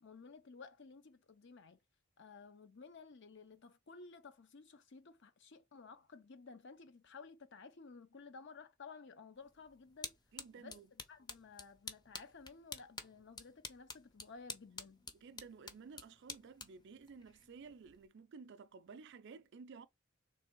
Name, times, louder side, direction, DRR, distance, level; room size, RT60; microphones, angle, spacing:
voice 1, 0.0-1.8 2.2-10.2 10.6-15.1, left 4 dB, 60° left, 0.7 m, -55 dB
sound 1, 9.4-18.1, left 3 dB, 20° left, 0.6 m, -51 dB
voice 2, 10.3-10.9 15.2-19.9, right 5 dB, 60° right, 0.4 m, -54 dB
3.3 x 3.2 x 4.5 m
head